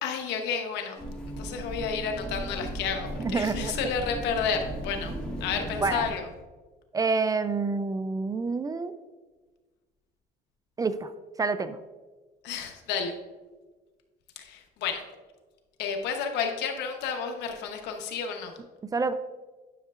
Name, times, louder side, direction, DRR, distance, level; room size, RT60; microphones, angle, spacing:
voice 1, 0.0-1.0 1.4-5.1 5.4-6.2 12.4-13.1 14.4-15.0 15.8-18.5, left 6 dB, 85° left, 4 dB, 1.0 m, -31 dB
sound 1, 1.0-6.1, right 1 dB, 5° left, 2.2 m, -36 dB
voice 2, 3.2-3.7 5.1-5.2 5.8-6.1 6.9-8.9 10.8-11.1 11.4-11.8 18.9-19.1, right 4 dB, 20° right, 12 dB, 0.4 m, -28 dB
10.0 x 6.4 x 2.5 m, 1.3 s
cardioid pair, 110°, 17 cm